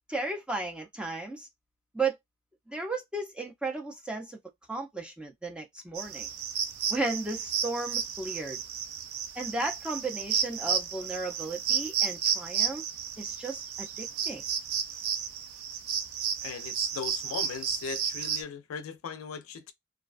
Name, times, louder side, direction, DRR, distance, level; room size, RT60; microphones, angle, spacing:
voice 1, 0.1-1.5 1.9-2.2 2.7-4.4 4.7-6.3 6.9-8.6 9.4-12.8 13.2-14.4, right 3 dB, 5° right, 0.4 m, -34 dB
sound 1, 5.9-18.4, right 7 dB, 85° right, 0.4 m, -32 dB
voice 2, 16.4-19.7, left 6 dB, 80° left, 0.4 m, -38 dB
2.4 x 2.2 x 2.4 m
head